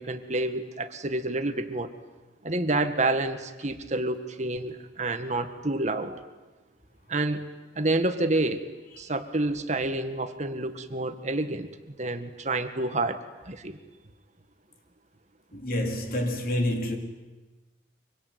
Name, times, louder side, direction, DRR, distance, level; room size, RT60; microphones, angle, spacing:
voice 1, 0.0-1.9 2.4-6.1 7.1-7.4 7.8-8.7 9.0-13.8, right 2 dB, 40° right, 1.7 m, -28 dB
voice 2, 15.5-17.0, left 1 dB, 55° left, 4.0 m, -28 dB
25.0 x 24.5 x 9.5 m
head